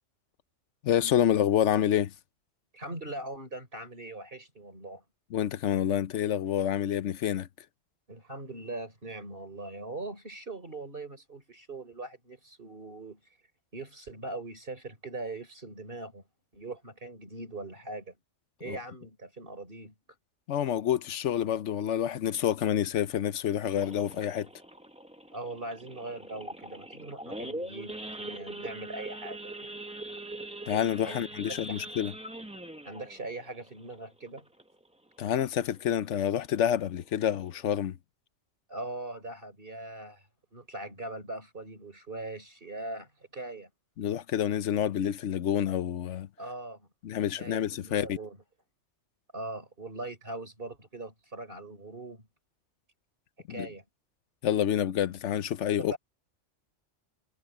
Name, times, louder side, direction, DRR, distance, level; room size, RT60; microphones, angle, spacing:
voice 1, 0.8-2.1 5.3-7.5 18.7-18.8 20.5-24.5 30.7-32.1 35.2-38.0 44.0-46.3 47.0-48.2 53.5-53.7 54.4-56.0, left 10 dB, 75° left, 1.0 m, -28 dB
voice 2, 2.7-5.0 8.1-13.2 13.7-16.2 16.5-18.2 18.6-19.9 25.3-29.5 31.1-31.2 31.7-31.8 32.9-34.5 38.7-43.7 46.4-46.9 47.4-48.4 49.3-52.3 53.5-53.8 55.9-56.0, right 2 dB, 45° right, 3.9 m, -41 dB
Idling / Accelerating revving vroom / Sawing, 23.8-34.9 35.2-35.5 35.7-35.8 36.3-36.5 37.0-37.1 37.3-37.7, right 1 dB, 5° right, 0.7 m, -42 dB
omnidirectional pair, 1.3 m